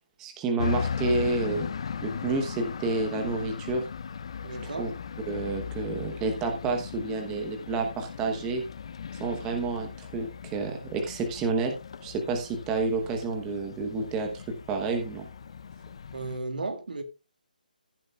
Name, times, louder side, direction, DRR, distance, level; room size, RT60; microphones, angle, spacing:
voice 1, 0.2-1.7 2.0-3.8 4.8-4.9 5.3-8.6 9.2-11.8 12.0-15.2, right 3 dB, 10° right, 1.0 m, -29 dB
sound 1, 0.6-16.4, left 6 dB, 35° left, 0.6 m, -37 dB
voice 2, 4.4-4.9 16.1-17.0, right 3 dB, 65° right, 2.3 m, -34 dB
15.0 x 8.7 x 2.3 m
hypercardioid pair, 175°, 5 cm